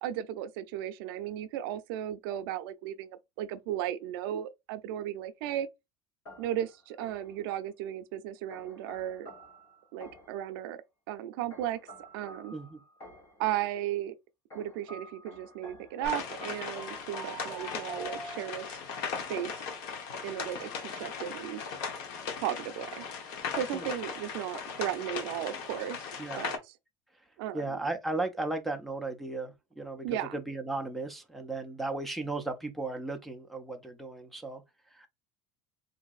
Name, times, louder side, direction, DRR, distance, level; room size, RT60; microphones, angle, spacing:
voice 1, 0.0-5.7 6.4-9.3 9.9-11.8 12.1-12.5 13.4-14.2 14.5-18.8 19.3-19.6 20.2-21.7 22.4-23.0 23.5-26.7 27.4-27.8 30.0-30.4, right 12 dB, 85° right, 0.5 m, -35 dB
sound 1, 6.3-7.5 8.5-10.5 11.5-13.5 14.5-18.8, right 1 dB, 25° left, 1.0 m, -48 dB
sound 2, 16.0-26.6, left 5 dB, 60° left, 0.8 m, -38 dB
voice 2, 27.5-30.1 30.3-34.6 34.9-35.1, right 2 dB, ahead, 0.3 m, -35 dB
3.9 x 2.6 x 2.3 m
cardioid pair, 180°, 12 cm